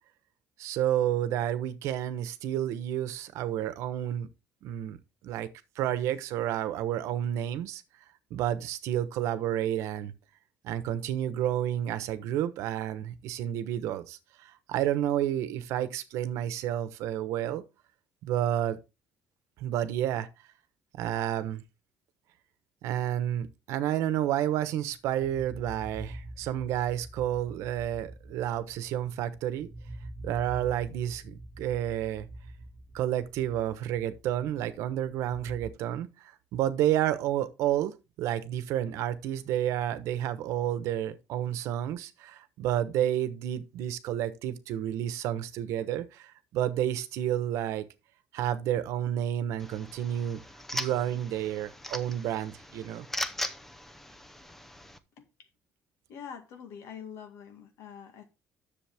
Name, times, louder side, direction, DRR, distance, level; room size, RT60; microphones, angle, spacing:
voice 1, 0.6-4.3 4.6-5.0 5.2-5.5 5.8-7.8 8.3-10.1 10.6-17.6 18.2-18.8 19.6-20.3 21.0-21.6 22.8-29.7 30.2-32.3 32.9-36.1 36.5-47.8 48.3-50.4 50.7-53.1, right 11 dB, 85° right, 1.1 m, -30 dB
sound 1, 24.9-35.7, right 1 dB, 25° right, 1.7 m, -45 dB
sound 2, 49.6-55.0, left 1 dB, 5° left, 0.6 m, -39 dB
voice 2, 56.1-58.3, left 7 dB, 70° left, 2.0 m, -45 dB
10.0 x 6.9 x 3.5 m
cardioid pair, 170°, 5 cm